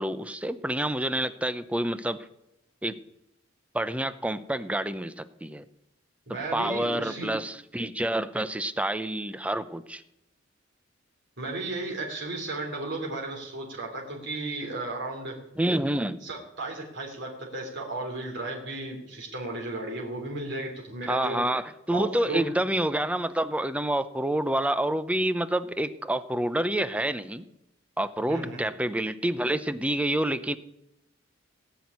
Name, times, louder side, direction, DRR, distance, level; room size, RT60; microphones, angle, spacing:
voice 1, 0.0-2.2 2.8-3.0 3.7-5.6 6.5-10.0 15.6-16.2 21.1-27.5 28.0-30.6, right 1 dB, 5° right, 14 dB, 0.6 m, -28 dB
voice 2, 6.3-7.3 11.4-15.3 16.2-21.4 21.9-22.4 28.3-28.6, right 2 dB, 65° right, -1 dB, 3.3 m, -34 dB
18.0 x 6.2 x 9.6 m, 0.85 s
head